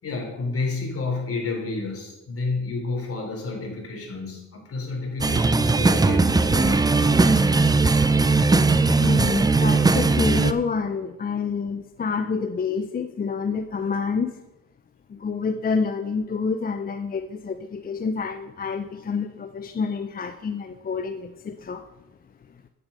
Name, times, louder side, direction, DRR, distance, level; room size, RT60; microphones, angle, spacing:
voice 1, 0.0-7.5, left 3 dB, 50° left, 0 dB, 3.9 m, -30 dB
sound 1, 5.2-10.5, right 3 dB, 15° right, 0.6 m, -19 dB
voice 2, 9.0-14.4 15.1-21.8, left 5 dB, 30° left, 9 dB, 0.6 m, -28 dB
9.7 x 8.2 x 5.5 m, 0.97 s
cardioid pair, 90°, 30 cm